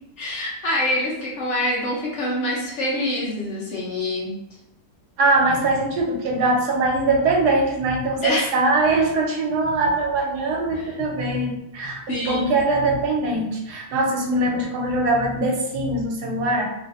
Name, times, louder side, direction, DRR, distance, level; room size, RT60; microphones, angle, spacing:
voice 1, 0.2-4.3 8.2-8.5 10.7-10.9 12.1-12.5, left 1 dB, 55° left, -4 dB, 0.9 m, -25 dB
voice 2, 5.2-16.6, right 2 dB, 85° right, 0 dB, 1.3 m, -22 dB
3.3 x 2.5 x 2.4 m, 0.90 s
omnidirectional pair, 1.7 m